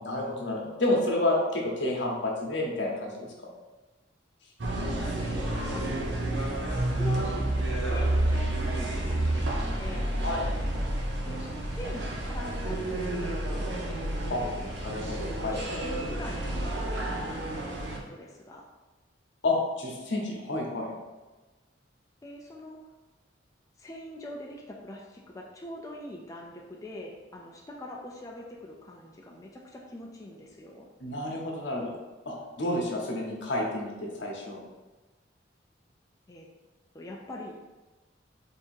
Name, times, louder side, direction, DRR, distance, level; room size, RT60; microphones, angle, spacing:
voice 1, 0.0-3.5 10.2-10.4 14.3-14.4 14.8-15.8 19.4-20.9 31.0-31.9 32.3-34.6, left 2 dB, 70° left, -1 dB, 0.9 m, -30 dB
sound 1, 4.6-18.0, right 1 dB, 65° right, 0.8 m, -30 dB
voice 2, 4.8-6.1 6.9-10.2 11.2-13.4 14.3-14.8 15.5-18.7 22.2-22.8 23.8-30.9 36.3-36.5 36.9-37.5, left 1 dB, 20° left, -2 dB, 0.4 m, -43 dB
3.5 x 2.8 x 4.4 m, 1.2 s
head